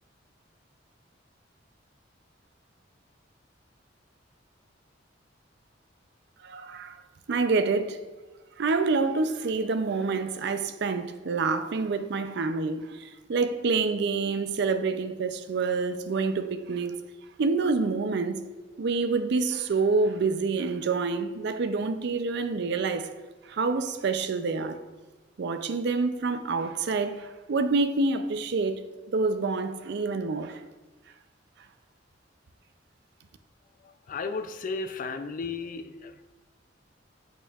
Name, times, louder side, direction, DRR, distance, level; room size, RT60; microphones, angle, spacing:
voice 1, 6.4-7.0 7.3-8.0 8.6-17.0 17.4-18.4 18.8-23.1 23.5-24.8 25.4-28.8 29.1-30.6, right 4 dB, 65° right, 0.4 m, -27 dB
voice 2, 33.8-36.2, left 4 dB, 45° left, 0.4 m, -34 dB
8.1 x 6.4 x 2.4 m
head